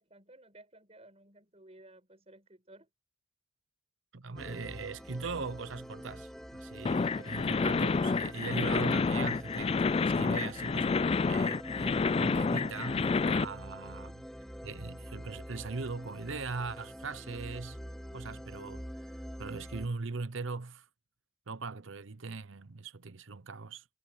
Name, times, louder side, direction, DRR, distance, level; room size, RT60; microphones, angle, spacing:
voice 1, 0.0-2.9 13.9-14.2, right 1 dB, 30° right, 6.7 m, -56 dB
voice 2, 4.1-14.1 14.6-17.8 18.1-18.8 19.4-20.9 21.5-23.8, right 4 dB, 70° right, 0.8 m, -40 dB
sound 1, 4.4-19.9, equal, ahead, 3.1 m, -46 dB
sound 2, 6.9-13.4, left 4 dB, 30° left, 0.3 m, -29 dB
head